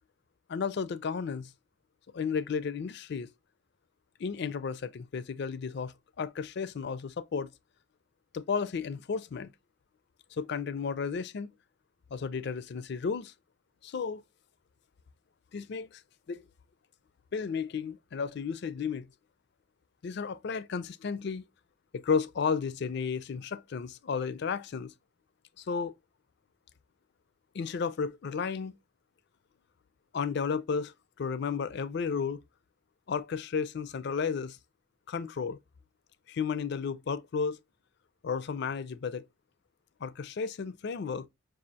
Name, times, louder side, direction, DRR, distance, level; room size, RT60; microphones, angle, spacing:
voice 1, 0.5-1.5 2.1-3.3 4.2-7.5 8.3-9.5 10.3-11.5 12.1-13.3 13.8-14.2 15.5-16.0 16.3-16.4 17.3-19.1 20.0-21.4 21.9-24.9 25.6-25.9 27.5-28.8 30.1-32.4 33.1-34.6 35.1-35.6 36.3-37.6 38.2-39.2 40.0-41.3, left 5 dB, 55° left, 0.4 m, -33 dB
6.1 x 2.4 x 2.7 m
head